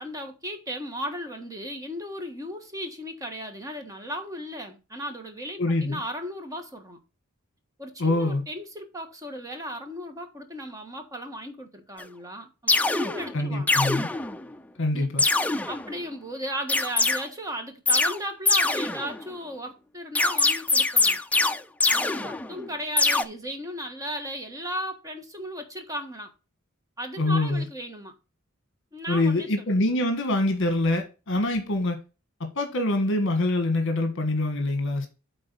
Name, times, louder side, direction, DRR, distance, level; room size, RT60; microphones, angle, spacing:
voice 1, 0.0-7.0 7.8-13.7 14.9-15.1 15.7-21.2 21.9-26.3 27.0-28.1 28.9-29.5, equal, 15° right, 1.4 m, -36 dB
voice 2, 5.6-6.0 8.0-8.4 13.3-14.1 14.8-15.2 27.2-27.7 29.1-32.0 32.4-35.1, left 2 dB, 60° left, 1.3 m, -25 dB
sound 1, 12.0-12.1 12.7-13.3 13.7-14.5 15.2-16.0 16.7-17.2 17.9-18.2 18.5-19.3 20.2-22.7 23.0-23.2, left 3 dB, 5° left, 0.3 m, -23 dB
8.9 x 3.9 x 5.4 m
head